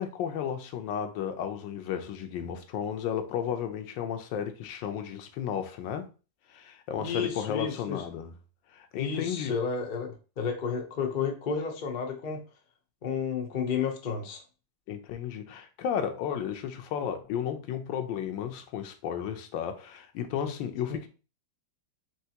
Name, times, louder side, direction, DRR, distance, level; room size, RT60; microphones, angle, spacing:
voice 1, 0.0-6.1 6.5-8.3 8.7-9.6 14.9-21.1, left 8 dB, 85° left, 1.4 m, -33 dB
voice 2, 7.0-8.0 8.9-12.4 13.0-14.4, left 6 dB, 65° left, 0.5 m, -31 dB
4.6 x 3.1 x 2.8 m
omnidirectional pair, 2.0 m